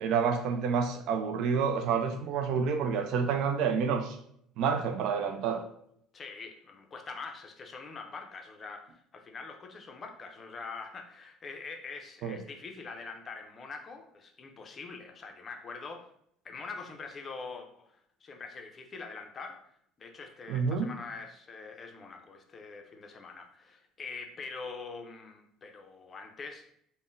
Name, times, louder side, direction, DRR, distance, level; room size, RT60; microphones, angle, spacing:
voice 1, 0.0-4.2 4.6-5.7 12.2-12.4 20.5-20.9, right 6 dB, 65° right, 6 dB, 0.3 m, -28 dB
voice 2, 6.1-16.1 16.4-19.7 20.0-26.7, left 4 dB, 30° left, 4 dB, 0.5 m, -44 dB
3.6 x 2.0 x 2.5 m, 0.69 s
cardioid pair, 120°, 0 cm